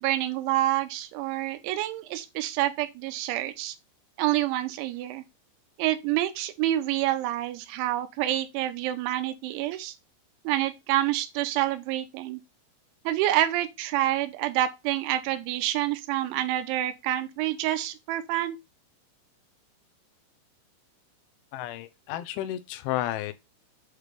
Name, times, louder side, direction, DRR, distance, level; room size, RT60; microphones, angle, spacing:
voice 1, 0.0-3.8 4.2-5.2 5.8-9.9 10.4-12.4 13.1-18.6, right 14 dB, 90° right, 3.1 m, -27 dB
voice 2, 21.5-23.3, left 13 dB, 85° left, 3.1 m, -32 dB
8.2 x 3.1 x 5.0 m
omnidirectional pair, 5.4 m